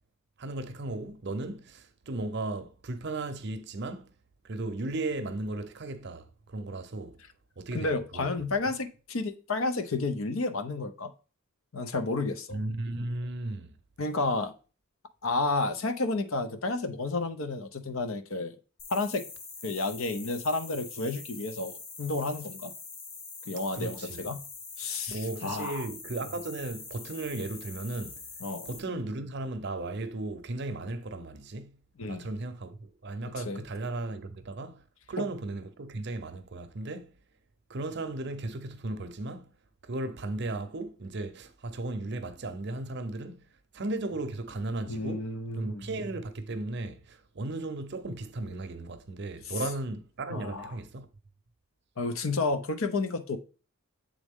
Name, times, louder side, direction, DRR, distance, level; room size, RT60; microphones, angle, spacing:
voice 1, 0.4-4.1 4.4-7.2 7.6-8.5 12.5-13.8 23.7-24.2 25.1-28.2 28.6-31.8 32.1-34.8 35.1-37.1 37.7-39.5 39.8-43.4 43.7-45.3 45.6-51.1, right 2 dB, 50° right, 0.6 m, -36 dB
voice 2, 7.7-11.1 11.7-12.6 14.0-14.5 15.2-18.6 18.9-19.2 19.6-22.7 23.5-24.4 24.8-25.8 28.4-28.7 32.0-32.3 33.4-33.6 35.2-35.3 44.9-45.9 50.3-50.7 52.0-53.4, left 3 dB, 70° left, 0.7 m, -31 dB
sound 1, 18.8-28.8, left 4 dB, 45° left, 1.0 m, -44 dB
7.5 x 3.6 x 3.6 m
head